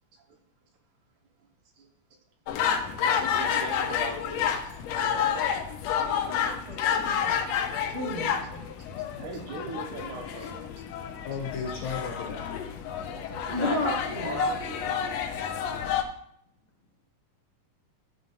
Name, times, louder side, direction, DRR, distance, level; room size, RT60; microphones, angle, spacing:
sound 1, 2.5-16.0, left 7 dB, 90° left, 1.5 m, -29 dB
voice 1, 3.0-5.4 5.9-6.2 8.4-10.8 13.5-13.8 14.1-15.0, right 4 dB, 70° right, 2 dB, 2.3 m, -41 dB
voice 2, 6.2-7.4 7.9-8.4 13.1-14.4, left 1 dB, 35° right, -4 dB, 1.0 m, -33 dB
voice 3, 11.2-12.5, left 5 dB, 70° left, 2 dB, 1.7 m, -34 dB
12.5 x 4.5 x 4.0 m, 0.69 s
omnidirectional pair, 3.9 m